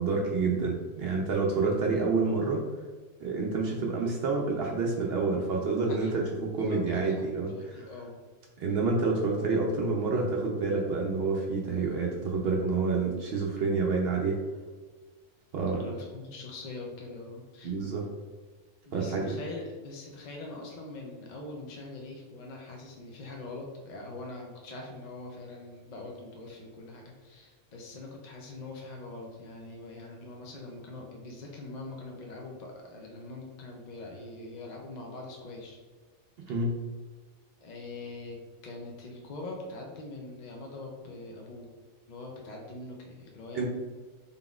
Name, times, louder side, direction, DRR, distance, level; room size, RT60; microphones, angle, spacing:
voice 1, 0.0-2.6 3.2-7.8 8.6-14.4 15.5-15.8 17.6-18.0 18.9-19.4 36.5-36.8 43.5-43.7, right 4 dB, 65° right, -1 dB, 0.6 m, -28 dB
voice 2, 5.9-6.2 6.7-7.2 7.5-8.2 15.7-17.8 18.9-35.8 37.6-41.7 42.1-43.7, left 2 dB, 55° left, 0 dB, 0.4 m, -43 dB
3.9 x 3.6 x 2.3 m, 1.4 s
omnidirectional pair, 1.4 m